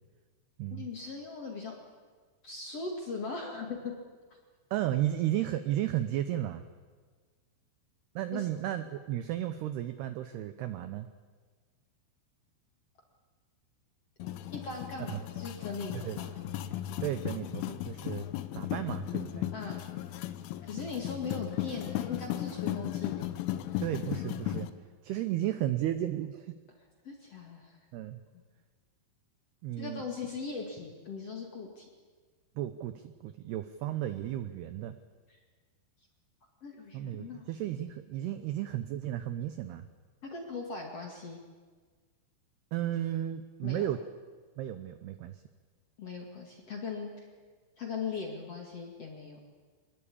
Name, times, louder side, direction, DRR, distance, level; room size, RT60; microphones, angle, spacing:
voice 1, 0.7-1.7 2.4-3.9 8.3-8.5 14.2-16.3 19.5-19.8 20.6-23.3 23.7-23.8 27.0-27.8 29.8-31.9 36.6-37.4 40.2-41.4 43.6-43.8 46.0-47.3 47.8-49.4, left 4 dB, 45° left, 1 dB, 2.0 m, -39 dB
voice 2, 4.7-6.6 8.2-11.1 15.1-15.2 15.9-16.2 17.0-18.3 18.6-19.5 23.8-24.7 25.0-26.5 27.9-28.2 29.6-30.0 32.6-35.0 36.9-39.9 42.7-44.0 44.6-45.4, right 12 dB, 90° right, 10 dB, 2.3 m, -34 dB
sound 1, 14.2-24.7, left 13 dB, 80° left, 3.3 m, -36 dB
25.0 x 20.5 x 8.6 m, 1.5 s
omnidirectional pair, 5.8 m